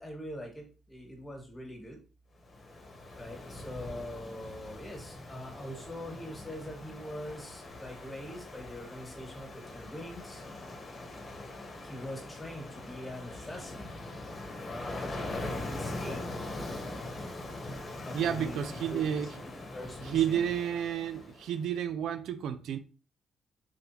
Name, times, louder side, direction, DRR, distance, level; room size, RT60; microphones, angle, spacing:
voice 1, 0.0-2.0 3.1-10.4 11.8-14.0 14.6-16.2 18.0-19.3 19.7-20.5, left 1 dB, 20° left, 1.7 m, -43 dB
Ocean, 2.4-21.6, left 2 dB, 40° left, 1.2 m, -42 dB
voice 2, 18.1-19.3 20.1-22.8, right 9 dB, 80° right, 0.4 m, -31 dB
3.8 x 3.3 x 2.9 m
cardioid pair, 85°, 0 cm